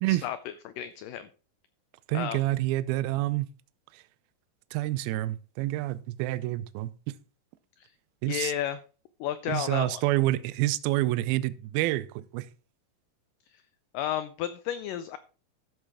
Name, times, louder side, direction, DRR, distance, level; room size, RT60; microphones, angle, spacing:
voice 1, 0.1-1.3 2.1-2.4 7.8-7.9 8.3-8.8 9.2-10.0 13.9-15.2, left 11 dB, 90° left, 1.9 m, -32 dB
voice 2, 2.1-3.5 4.7-6.9 8.2-8.5 9.5-12.5, right 17 dB, 80° right, 2.4 m, -28 dB
13.0 x 7.8 x 3.5 m
omnidirectional pair, 4.5 m